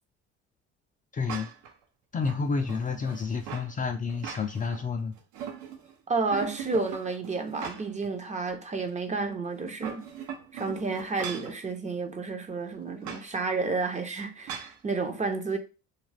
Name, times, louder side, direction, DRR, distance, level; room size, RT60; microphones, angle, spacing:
voice 1, 1.1-1.5 2.1-5.1, left 5 dB, 25° left, 0.4 m, -30 dB
sound 1, 1.3-1.7 2.2-3.7 4.1-4.8 5.2-5.9 6.3-8.1 8.5-8.6 9.6-11.6 13.0-13.3 14.5-14.8, right 8 dB, 70° right, 0.7 m, -40 dB
voice 2, 6.1-10.0 10.6-15.6, right 4 dB, 25° right, 0.6 m, -31 dB
2.4 x 2.3 x 3.2 m
supercardioid pair, 80°, 31 cm